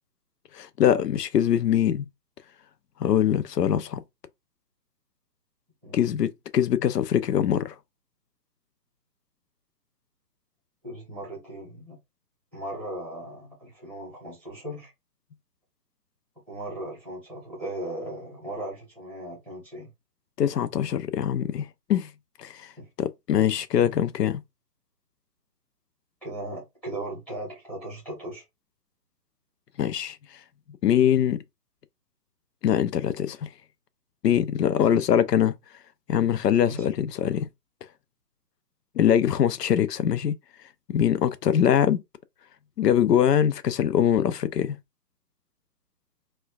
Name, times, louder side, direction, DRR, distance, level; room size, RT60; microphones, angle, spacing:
voice 1, 0.5-2.0 3.0-4.0 5.9-7.7 20.4-22.1 22.4-22.7 23.0-24.4 29.8-30.2 30.8-31.4 32.6-33.5 34.2-35.5 36.1-37.5 38.9-40.4 40.9-42.0 42.8-44.8, left 9 dB, 70° left, 0.6 m, -23 dB
voice 2, 10.8-12.0 12.5-14.9 16.5-19.9 22.8-22.9 26.2-28.4 36.7-36.8, right 1 dB, 5° left, 0.9 m, -37 dB
4.3 x 2.3 x 2.3 m
hypercardioid pair, 155°, 50 cm